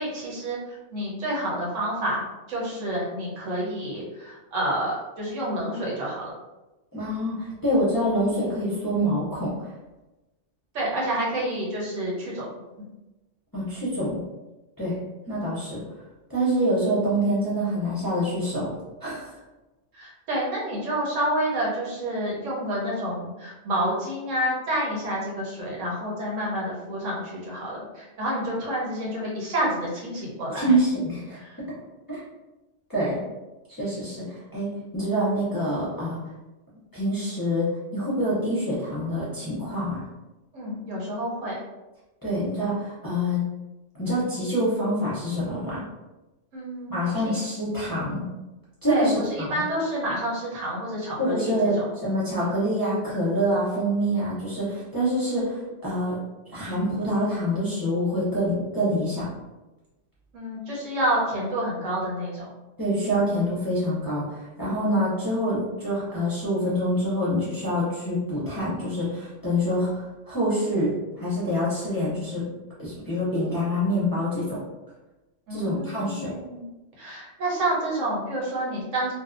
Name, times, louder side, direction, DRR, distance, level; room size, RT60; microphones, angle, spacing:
voice 1, 0.0-6.3 10.7-12.4 19.9-30.7 31.3-31.6 40.5-41.6 46.5-47.4 48.9-51.9 60.3-62.5 75.5-76.7 77.0-79.1, right 1 dB, 80° right, -4 dB, 1.2 m, -29 dB
voice 2, 6.9-9.5 13.5-14.2 14.8-15.0 15.3-15.8 16.3-18.7 19.0-19.3 30.5-31.4 32.1-32.2 32.9-33.2 33.8-34.2 34.5-34.7 34.9-36.2 36.9-40.0 42.2-43.4 43.9-45.8 46.9-48.2 48.8-49.5 51.2-56.2 56.5-59.3 62.8-72.4 72.8-74.6 75.5-76.3, equal, 25° left, -9 dB, 0.6 m, -26 dB
2.6 x 2.3 x 2.5 m, 1.1 s
omnidirectional pair, 1.3 m